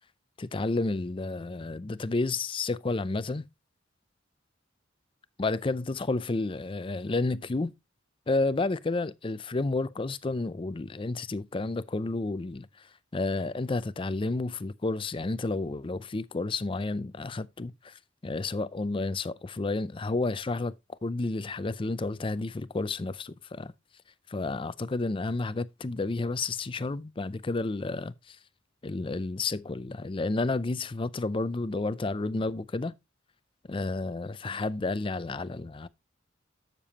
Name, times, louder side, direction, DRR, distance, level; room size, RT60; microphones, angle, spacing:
voice 1, 0.4-3.4 5.4-7.7 8.3-12.9 13.1-20.7 21.0-23.7 24.3-28.4 28.8-32.9 33.7-35.9, left 3 dB, 25° left, 0.5 m, -31 dB
12.5 x 6.8 x 2.9 m
head